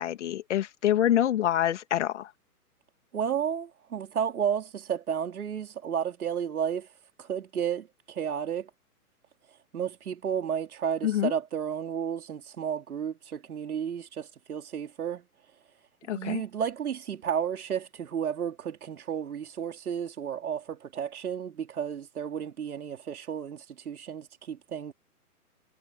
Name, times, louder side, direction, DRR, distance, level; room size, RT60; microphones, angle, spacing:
voice 1, 0.0-2.3 11.0-11.3 16.1-16.4, left 11 dB, 50° left, 2.2 m, -26 dB
voice 2, 3.1-6.9 7.2-8.7 9.7-15.2 16.1-24.9, right 8 dB, 65° right, 4.6 m, -32 dB
hypercardioid pair, 150°, 47 cm